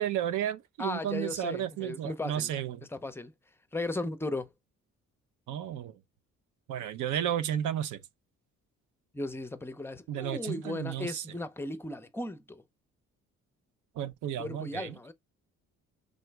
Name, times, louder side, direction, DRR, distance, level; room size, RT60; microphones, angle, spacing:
voice 1, 0.0-2.8 5.5-5.9 6.7-8.0 10.1-11.2 14.0-14.9, right 10 dB, 80° right, 0.7 m, -33 dB
voice 2, 0.8-2.5 2.8-3.3 3.7-4.5 9.1-12.6 14.4-15.1, left 2 dB, 10° left, 0.5 m, -36 dB
4.0 x 3.0 x 3.3 m
cardioid pair, 90°, 30 cm